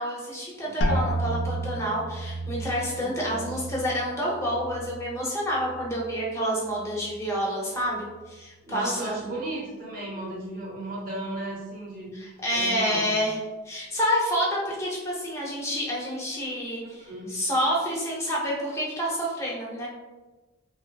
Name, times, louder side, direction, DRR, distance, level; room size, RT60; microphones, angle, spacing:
voice 1, 0.0-9.3 12.2-13.4 13.7-19.9, equal, 15° left, -4 dB, 0.6 m, -28 dB
voice 2, 0.6-1.5 3.0-3.6 8.6-12.1 12.5-13.2 16.8-17.3, right 1 dB, 45° right, -4 dB, 0.8 m, -36 dB
sound 1, 0.8-6.4 6.8-7.5 8.0-8.4, right 1 dB, 60° left, 0.3 m, -32 dB
2.9 x 2.1 x 2.3 m, 1.2 s
head